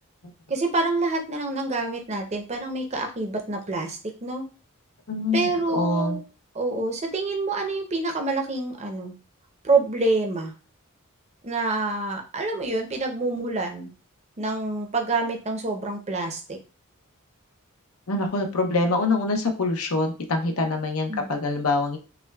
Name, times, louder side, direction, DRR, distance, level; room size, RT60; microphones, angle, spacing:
voice 1, 0.5-4.5 5.3-6.2 6.5-9.1 9.6-10.5 11.4-13.9 14.4-16.6 21.1-21.3, right 3 dB, 30° right, 3 dB, 0.7 m, -27 dB
voice 2, 5.1-6.2 18.1-22.0, left 3 dB, 75° left, 4 dB, 0.8 m, -25 dB
5.7 x 2.2 x 2.3 m, 0.34 s
head